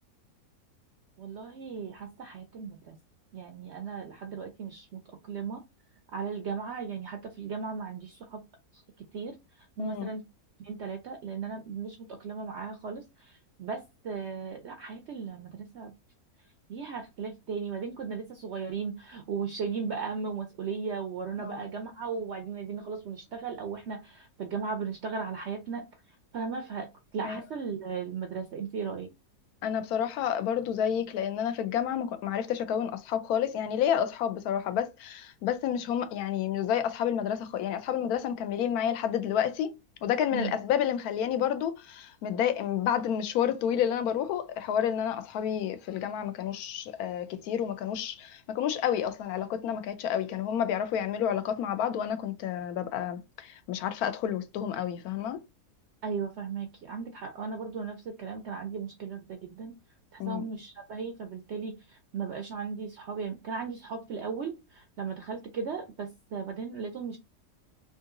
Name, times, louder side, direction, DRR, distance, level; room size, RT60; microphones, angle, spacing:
voice 1, 1.2-3.0 3.3-5.6 6.1-8.4 8.7-8.8 9.1-10.3 10.6-15.9 16.7-25.9 26.3-26.9 27.1-29.1 40.3-40.6 56.0-59.8 60.1-67.2, right 5 dB, 65° right, 0.7 m, -36 dB
voice 2, 9.8-10.1 21.4-21.6 27.2-27.4 29.6-39.8 40.0-55.4 60.2-60.5, left 9 dB, 75° left, 1.0 m, -30 dB
3.8 x 2.6 x 2.5 m
omnidirectional pair, 1.7 m